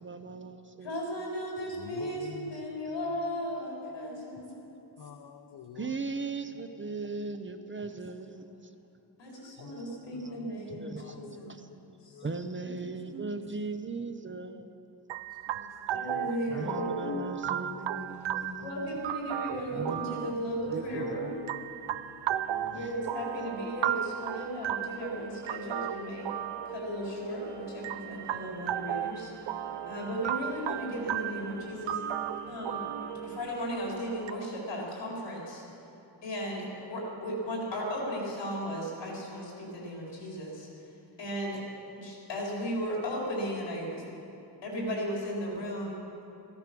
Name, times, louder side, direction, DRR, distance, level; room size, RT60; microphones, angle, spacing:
voice 1, 0.0-1.0 5.8-8.7 9.8-10.0 10.6-11.2 11.5-11.7 12.2-14.7 16.5-17.8 19.7-20.3 20.7-21.4 22.6-22.9, right 3 dB, 25° right, 0.6 m, -38 dB
voice 2, 0.8-4.7 9.2-11.6 12.0-12.2 12.7-12.8 15.9-17.0 18.6-21.3 22.7-26.3 26.7-29.3 29.9-32.0 32.5-32.8 33.2-35.6 36.2-40.7 41.2-41.6 42.0-44.0 44.6-46.0, equal, 75° left, 4.1 m, -35 dB
voice 3, 1.7-2.6 5.0-5.9 9.6-9.8 10.2-10.5 11.0-11.7 12.1-12.3 16.1-18.0 20.9-23.0, left 5 dB, 60° left, 0.8 m, -44 dB
voice 4, 8.3-8.7 12.5-13.4 14.4-14.7 15.3-16.1 17.4-19.0, right 1 dB, 45° right, 1.1 m, -48 dB
sound 1, 15.1-34.3, right 11 dB, 85° right, 0.5 m, -36 dB
sound 2, 19.3-33.4, right 2 dB, 60° right, 3.6 m, -50 dB
15.0 x 13.0 x 6.0 m
wide cardioid pair, 165°, 44 cm